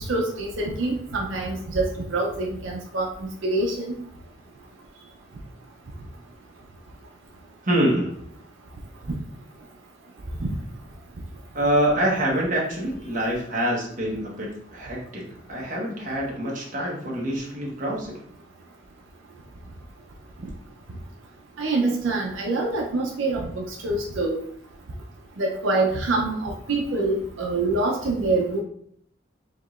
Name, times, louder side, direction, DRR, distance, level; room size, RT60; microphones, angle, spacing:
voice 1, 0.1-4.0 10.4-10.5 21.6-24.4 25.4-28.6, right 2 dB, 85° right, 0 dB, 0.6 m, -25 dB
voice 2, 7.6-8.2 11.5-18.2, right 1 dB, 40° right, -3 dB, 1.1 m, -26 dB
4.6 x 2.9 x 2.4 m, 0.65 s
head